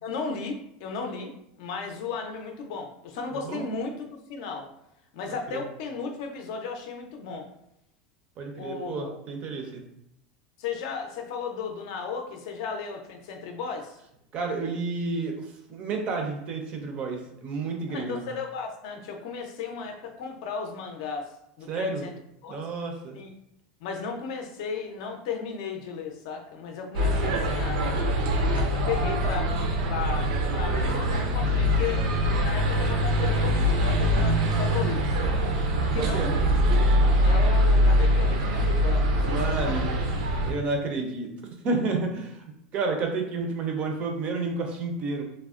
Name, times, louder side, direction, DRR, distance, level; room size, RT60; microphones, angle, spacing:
voice 1, 0.0-4.7 5.1-7.5 8.6-9.2 10.6-14.0 17.9-21.3 21.6-22.1 22.4-22.6 23.1-23.3 23.8-27.8 28.5-29.5 29.9-32.0 32.4-35.1 35.9-36.4 37.2-39.8, left 5 dB, 60° left, 3 dB, 0.5 m, -35 dB
voice 2, 8.4-9.8 14.3-18.2 21.7-22.1 22.5-23.2 35.9-36.3 39.2-39.9 40.4-42.4 42.7-45.2, right 3 dB, 30° right, 3 dB, 0.4 m, -30 dB
sound 1, 26.9-40.5, equal, 90° right, 0.5 m, -23 dB
3.3 x 2.0 x 2.4 m, 0.77 s
supercardioid pair, 165°, 4 cm